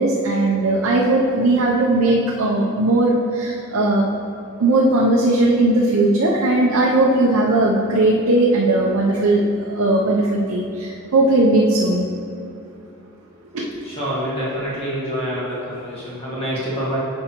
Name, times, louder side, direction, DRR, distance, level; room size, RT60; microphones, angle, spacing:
voice 1, 0.0-4.1 4.6-12.0 13.5-13.9, right 2 dB, 70° right, -2 dB, 0.6 m, -18 dB
voice 2, 13.8-17.0, equal, 25° left, -7 dB, 1.6 m, -26 dB
8.9 x 5.4 x 3.0 m, 2.5 s
head